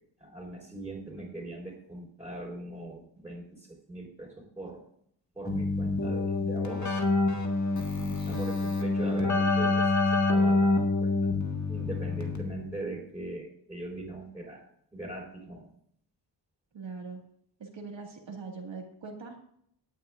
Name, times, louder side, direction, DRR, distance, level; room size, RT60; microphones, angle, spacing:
voice 1, 0.2-4.8 5.3-6.9 8.3-11.1 11.7-14.6 14.9-15.7, right 2 dB, 5° right, -6 dB, 4.2 m, -40 dB
Keyboard (musical), 5.5-12.7, left 2 dB, 35° left, 1.7 m, -27 dB
voice 2, 8.0-8.4 16.7-17.2 17.6-19.4, right 4 dB, 70° right, 1 dB, 2.0 m, -42 dB
18.0 x 9.5 x 2.5 m, 0.68 s
wide cardioid pair, 85°, 47 cm